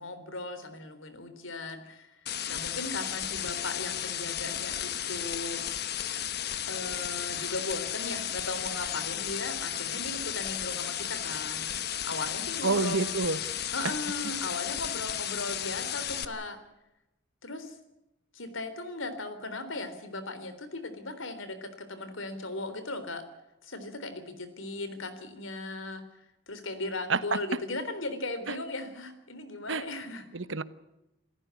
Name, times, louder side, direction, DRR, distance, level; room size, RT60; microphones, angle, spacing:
voice 1, 0.0-2.2 2.5-5.8 6.7-11.7 12.0-13.0 13.7-16.6 17.4-17.8 18.3-23.2 23.6-26.0 26.5-30.3, left 2 dB, 75° left, 11 dB, 3.6 m, -37 dB
sound 1, 2.3-16.3, left 10 dB, 50° left, 1.2 m, -34 dB
voice 2, 12.6-13.4 27.1-27.4 28.5-28.6 29.7-29.8 30.3-30.6, right 4 dB, 70° right, 14 dB, 1.1 m, -28 dB
27.5 x 14.0 x 8.4 m, 0.93 s
head